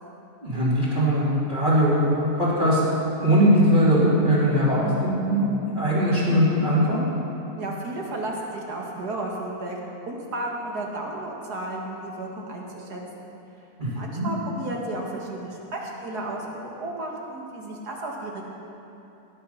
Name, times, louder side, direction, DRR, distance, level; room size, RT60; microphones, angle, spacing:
voice 1, 0.4-2.8 3.2-5.5 5.7-7.0 13.8-14.3, equal, 30° right, -10 dB, 3.4 m, -20 dB
voice 2, 7.6-9.8 10.1-13.3 14.0-18.4, right 2 dB, 85° right, -1 dB, 2.4 m, -33 dB
19.0 x 9.2 x 5.7 m, 2.9 s
omnidirectional pair, 1.7 m